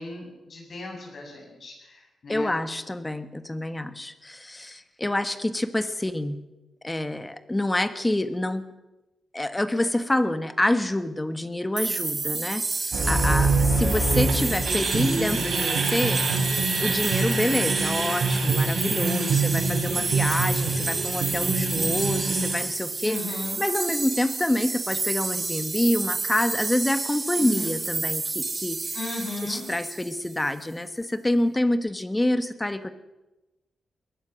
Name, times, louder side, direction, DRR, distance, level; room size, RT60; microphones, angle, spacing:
voice 1, 0.0-2.6 13.0-13.5 19.0-19.4 23.0-23.6 27.4-27.7 28.9-29.7, left 2 dB, 55° left, 1 dB, 8.0 m, -36 dB
voice 2, 2.3-6.4 6.8-8.7 9.3-16.2 16.8-23.1 23.6-28.9 29.4-32.9, left 1 dB, 15° left, 10 dB, 1.4 m, -27 dB
sound 1, 11.8-30.4, right 3 dB, 30° right, 1.2 m, -30 dB
sound 2, 12.9-22.5, right 3 dB, 85° right, 6.7 m, -25 dB
21.5 x 19.5 x 6.3 m, 1.0 s
wide cardioid pair, 110°, 0 cm